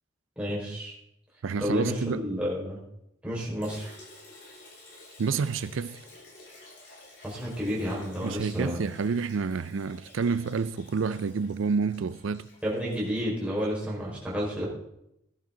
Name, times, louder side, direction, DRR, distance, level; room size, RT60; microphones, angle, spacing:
voice 1, 0.4-0.9 1.6-2.8 3.2-4.0 7.2-8.8 12.6-14.6, equal, 5° right, 5.0 m, -31 dB
voice 2, 1.4-2.3 5.2-6.0 8.2-12.5, right 5 dB, 75° right, 0.4 m, -29 dB
Liquid, 3.6-13.7, left 2 dB, 65° left, 6.8 m, -52 dB
17.0 x 11.5 x 3.9 m
head